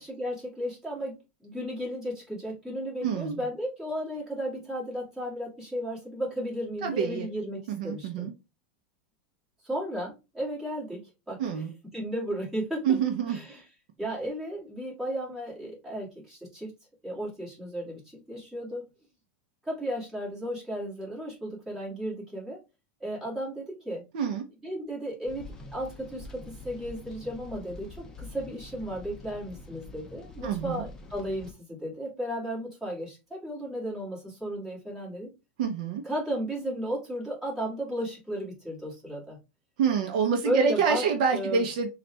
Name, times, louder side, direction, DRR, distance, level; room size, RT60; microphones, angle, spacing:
voice 1, 0.0-8.3 9.6-11.6 11.9-13.0 13.3-13.6 14.0-16.7 17.0-18.9 19.6-22.6 23.0-24.0 24.6-35.3 36.0-39.4 40.4-41.0 41.3-41.6, equal, 5° right, 2.1 m, -34 dB
voice 2, 3.0-3.4 6.8-7.3 7.7-8.3 11.4-11.7 12.8-13.4 24.1-24.4 30.4-30.9 35.6-36.0 39.8-41.9, right 6 dB, 60° right, 0.8 m, -27 dB
sound 1, 25.3-31.5, left 2 dB, 15° left, 0.6 m, -45 dB
4.0 x 2.5 x 3.3 m
supercardioid pair, 160°, 5 cm